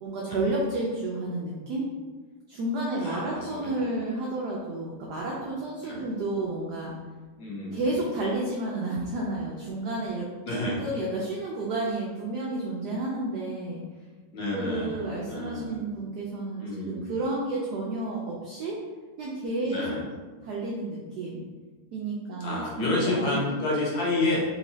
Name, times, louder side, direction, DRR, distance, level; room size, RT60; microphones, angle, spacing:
voice 1, 0.0-1.9 2.5-6.9 7.7-13.8 14.5-18.8 19.2-19.8 20.4-21.4 21.9-23.5, right 2 dB, 85° right, -4 dB, 0.9 m, -31 dB
voice 2, 3.0-3.7 5.8-6.1 7.4-8.0 10.4-10.8 14.3-15.8 16.6-17.1 19.6-20.1 22.4-24.4, left 2 dB, 65° left, -5 dB, 1.4 m, -30 dB
3.5 x 2.9 x 2.7 m, 1.3 s
omnidirectional pair, 2.3 m